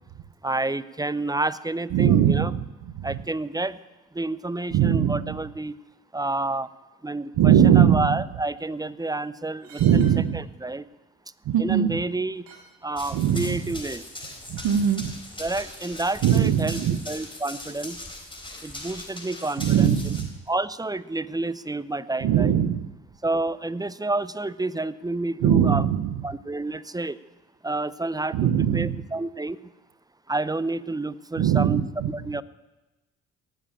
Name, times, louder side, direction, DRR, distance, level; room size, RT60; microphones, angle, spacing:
voice 1, 0.4-2.5 3.0-3.8 4.1-5.7 6.1-6.7 7.0-10.8 11.6-12.5 12.8-14.0 15.4-16.8 17.1-18.0 18.6-20.1 20.5-22.5 23.2-25.9 26.2-27.2 27.6-29.6 30.3-32.4, right 2 dB, 10° right, 18 dB, 0.6 m, -29 dB
voice 2, 1.9-2.7 3.1-3.2 4.7-5.4 7.4-8.2 9.8-10.4 11.5-12.0 13.1-13.6 14.5-15.1 16.2-17.0 19.6-20.3 22.2-22.9 25.4-26.2 28.3-29.0 31.4-32.1, right 9 dB, 65° right, 11 dB, 0.9 m, -21 dB
sound 1, 9.6-10.2 11.5-11.6 12.1-12.2 12.5-12.7 14.5-15.0 15.4-15.5, right 4 dB, 85° right, 2.8 m, -48 dB
Run, 13.0-20.2, left 1 dB, 10° left, 4.1 m, -40 dB
18.0 x 7.5 x 8.7 m, 1.1 s
hypercardioid pair, 50°, 40 cm